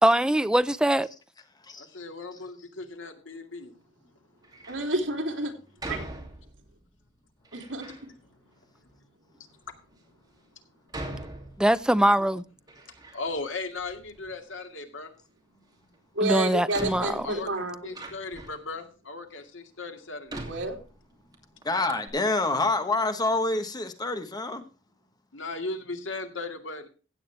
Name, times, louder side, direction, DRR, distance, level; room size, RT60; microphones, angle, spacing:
voice 1, 0.0-1.1 11.6-12.4 16.2-17.3, right 1 dB, 5° right, 0.5 m, -22 dB
voice 2, 1.8-3.7 13.1-15.1 17.2-17.5 17.8-20.5 25.3-26.9, left 3 dB, 80° left, 2.2 m, -37 dB
Door, 4.4-4.9 5.8-6.8 7.4-8.1 8.8-8.9 9.6-9.7 10.9-12.1 12.4-13.5 13.7-14.6 15.9-16.0 16.7-18.7 19.3-19.4 20.3-21.4 21.6-21.7 21.9-22.1, right 1 dB, 20° right, 2.7 m, -41 dB
voice 3, 4.7-5.5 5.9-6.0 7.5-7.8 16.1-17.8 20.5-20.8, right 2 dB, 75° right, 3.3 m, -29 dB
voice 4, 21.6-24.6, left 2 dB, 20° left, 1.2 m, -27 dB
16.0 x 8.8 x 3.4 m
head